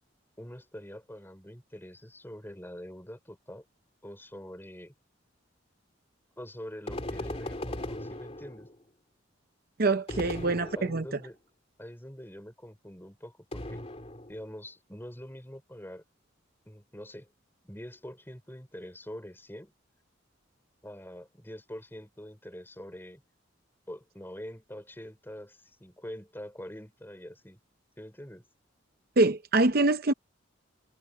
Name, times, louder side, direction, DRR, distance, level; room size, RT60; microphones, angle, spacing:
voice 1, 0.4-3.6 4.0-4.9 6.4-8.7 10.1-11.4 11.8-13.8 14.3-16.0 16.7-17.3 17.6-19.7 20.8-23.2 23.9-27.6 28.0-28.5, equal, 10° left, 4.5 m, -44 dB
sound 1, 6.9-8.8 10.1-11.3 13.5-14.5, left 1 dB, 30° left, 3.0 m, -38 dB
voice 2, 9.8-11.0 29.2-30.1, right 2 dB, 50° right, 0.7 m, -24 dB
head